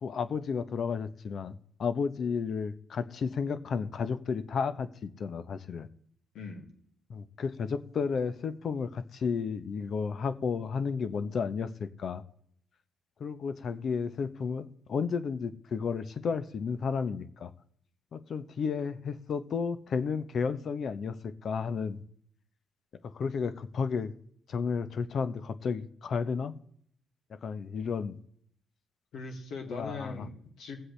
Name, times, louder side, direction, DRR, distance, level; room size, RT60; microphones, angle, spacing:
voice 1, 0.0-5.9 7.1-12.2 13.2-17.5 18.1-22.0 23.0-24.1 24.5-26.5 27.3-28.2 29.7-30.3, left 5 dB, 55° left, 12 dB, 0.8 m, -32 dB
voice 2, 6.3-6.7 29.1-30.8, left 3 dB, 75° left, 1 dB, 2.7 m, -40 dB
19.5 x 7.8 x 3.3 m, 0.65 s
cardioid pair, 90°, 0 cm